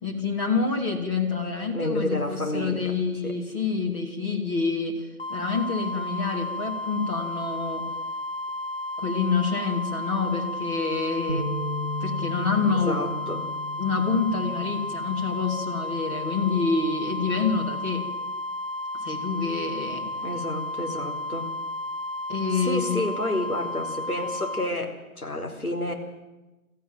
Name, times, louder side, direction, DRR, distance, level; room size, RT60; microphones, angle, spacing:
voice 1, 0.0-5.0 5.3-7.9 9.0-11.5 12.0-13.0 13.8-18.1 18.9-20.1 22.3-23.0, left 4 dB, 20° left, -1 dB, 3.1 m, -27 dB
voice 2, 1.7-2.9 3.2-3.3 12.7-13.5 20.2-21.5 22.5-25.9, left 1 dB, 80° left, 3 dB, 4.7 m, -30 dB
sound 1, 5.2-24.7, left 1 dB, 40° left, 1.3 m, -33 dB
sound 2, 11.3-17.5, left 1 dB, 20° right, 1.5 m, -37 dB
22.5 x 15.0 x 9.1 m, 1.1 s
figure-of-eight pair, 155°, 44 cm